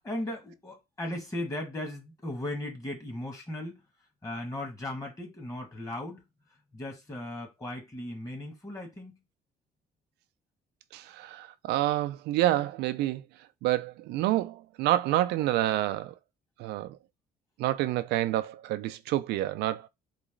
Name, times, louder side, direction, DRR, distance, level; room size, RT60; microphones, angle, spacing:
voice 1, 0.0-3.8 4.2-6.2 6.7-9.2, left 1 dB, 20° left, 1.9 m, -37 dB
voice 2, 10.9-13.2 13.6-16.1 16.6-17.0 17.6-19.9, right 14 dB, 80° right, 0.4 m, -28 dB
4.0 x 3.0 x 3.7 m
cardioid pair, 110°, 17 cm